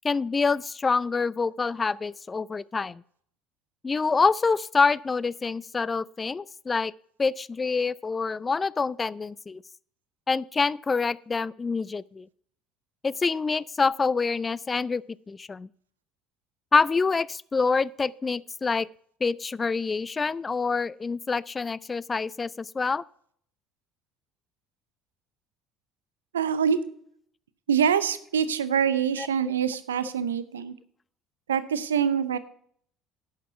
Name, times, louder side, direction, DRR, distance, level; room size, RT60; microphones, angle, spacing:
voice 1, 0.0-3.0 3.8-6.9 7.2-9.6 10.3-12.3 13.0-15.7 16.7-18.9 19.2-23.0 29.2-29.3, left 4 dB, 25° left, 0.4 m, -26 dB
voice 2, 26.3-26.8 27.7-30.7 31.5-32.4, right 7 dB, 85° right, 0.6 m, -25 dB
11.0 x 6.8 x 5.7 m
hypercardioid pair, 65°, 0 cm